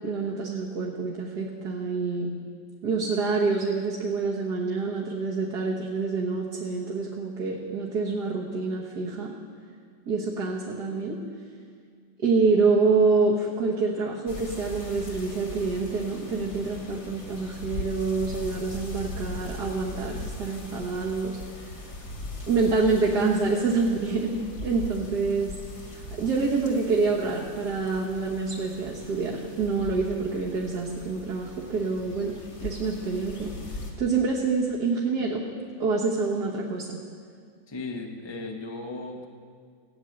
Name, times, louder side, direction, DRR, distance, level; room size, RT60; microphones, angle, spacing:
voice 1, 0.0-2.3 2.8-9.3 10.1-11.2 12.2-21.4 22.5-25.6 25.9-32.3 32.6-33.5 34.0-35.4 35.8-37.0, right 4 dB, 60° right, -4 dB, 1.9 m, -26 dB
sound 1, 14.3-33.9, left 1 dB, 60° left, 2.6 m, -40 dB
voice 2, 37.7-39.3, left 3 dB, 20° left, 1 dB, 0.7 m, -36 dB
16.5 x 9.1 x 7.8 m, 2.1 s
omnidirectional pair, 2.0 m